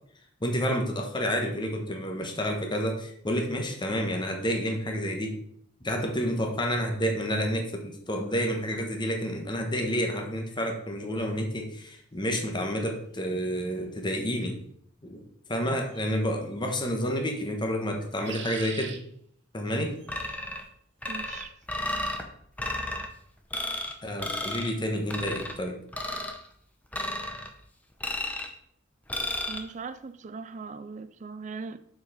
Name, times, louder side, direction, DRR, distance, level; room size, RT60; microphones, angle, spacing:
voice 1, 0.4-5.3 5.8-14.5 15.0-15.2 15.5-19.0 19.5-19.9 24.0-25.8, equal, 25° left, 1.2 m, -29 dB
sound 1, 13.3-13.4 15.9-16.2 18.0-19.0 19.9-20.4, right 8 dB, 65° right, 0.9 m, -43 dB
sound 2, 20.1-20.7 21.0-22.2 22.6-23.1 23.5-23.9 24.2-24.7 25.1-25.5 25.9-26.4 26.9-27.5 28.0-28.5 29.1-29.6, left 1 dB, 10° left, 0.7 m, -33 dB
voice 2, 21.1-21.6 29.5-31.8, right 4 dB, 40° right, 0.4 m, -39 dB
6.6 x 4.8 x 4.9 m
head